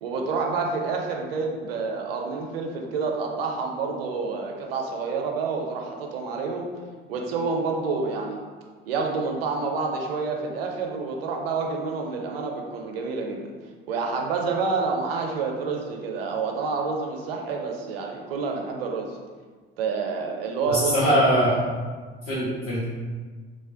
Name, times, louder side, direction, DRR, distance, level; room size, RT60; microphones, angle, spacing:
voice 1, 0.0-6.7 7.1-8.4 8.9-13.5 13.9-19.2 19.8-21.2, right 4 dB, 75° right, 1 dB, 0.5 m, -28 dB
voice 2, 20.7-21.6 22.3-22.8, equal, 50° left, -8 dB, 0.7 m, -21 dB
3.0 x 2.0 x 2.6 m, 1.5 s
figure-of-eight pair, 55°, 30 cm